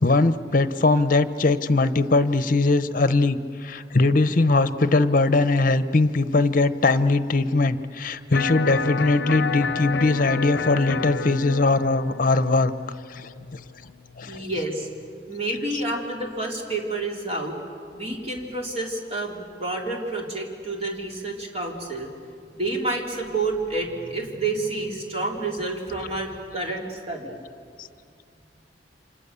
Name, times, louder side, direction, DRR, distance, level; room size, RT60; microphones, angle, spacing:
voice 1, 0.0-12.7 13.1-13.6 14.2-14.6 15.5-15.8 27.8-27.9, left 3 dB, 50° left, 12 dB, 0.9 m, -21 dB
Electric guitar, 8.3-14.4, left 5 dB, 75° left, 0.6 m, -30 dB
voice 2, 14.3-14.9 15.3-17.5 17.9-22.1 22.5-27.3, right 2 dB, 35° right, -1 dB, 3.8 m, -29 dB
29.0 x 26.0 x 7.0 m, 2.4 s
head